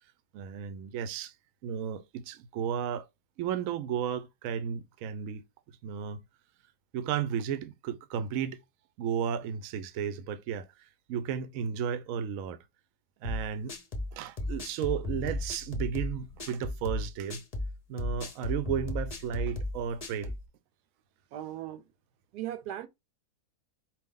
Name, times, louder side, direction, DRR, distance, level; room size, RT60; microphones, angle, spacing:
voice 1, 0.3-1.3 1.6-3.0 3.4-5.4 5.8-6.2 6.9-8.6 9.0-10.7 11.1-12.6 13.2-13.7 14.1-17.4 17.9-20.3, right 8 dB, 65° right, 0.9 m, -33 dB
sound 1, 13.2-20.5, left 2 dB, 35° left, 0.6 m, -35 dB
voice 2, 21.3-21.8 22.3-22.9, right 12 dB, 90° right, 1.2 m, -37 dB
4.5 x 2.6 x 3.6 m
omnidirectional pair, 1.7 m